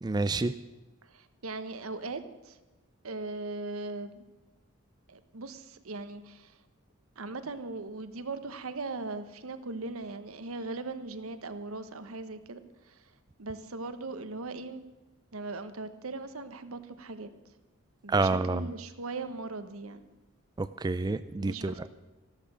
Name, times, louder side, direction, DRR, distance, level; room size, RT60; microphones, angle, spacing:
voice 1, 0.0-0.6 18.1-18.7 20.6-21.9, right 3 dB, 20° right, 12 dB, 0.4 m, -28 dB
voice 2, 1.0-2.6 3.0-4.2 5.1-6.6 7.2-13.1 13.4-14.8 15.3-17.3 18.0-20.0 21.3-21.9, right 3 dB, 80° right, 10 dB, 1.1 m, -39 dB
14.0 x 12.0 x 6.3 m, 1.1 s
head